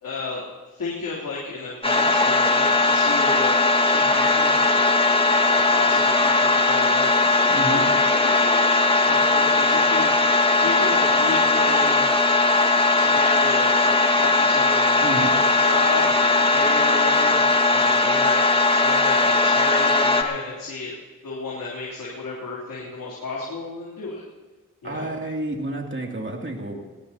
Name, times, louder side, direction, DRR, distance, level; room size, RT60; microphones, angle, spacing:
voice 1, 0.0-3.6 3.9-7.1 7.7-8.8 9.0-12.1 12.9-17.4 17.7-18.4 18.8-20.9 21.2-24.2 24.8-25.1, left 3 dB, 70° left, -6 dB, 3.4 m, -33 dB
sound 1, 1.8-20.2, left 3 dB, 15° left, 1.8 m, -19 dB
voice 2, 7.5-7.9 15.0-15.4 24.8-26.8, right 2 dB, 35° right, 1 dB, 2.8 m, -30 dB
20.0 x 17.5 x 2.9 m, 1.3 s
cardioid pair, 50°, 33 cm